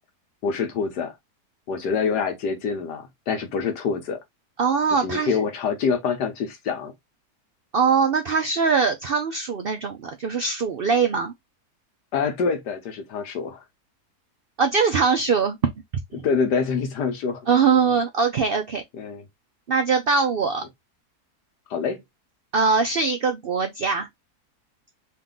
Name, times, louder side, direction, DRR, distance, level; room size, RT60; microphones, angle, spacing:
voice 1, 0.4-1.1 1.7-4.2 4.9-6.9 12.1-13.6 16.1-17.5 18.9-19.2 21.7-22.0, left 5 dB, 90° left, 1.6 m, -26 dB
voice 2, 4.6-5.3 7.7-11.3 14.6-15.7 16.1-16.2 17.5-18.8 19.7-20.6 22.5-24.1, right 5 dB, 80° right, 0.5 m, -22 dB
4.0 x 2.6 x 3.7 m
omnidirectional pair, 1.7 m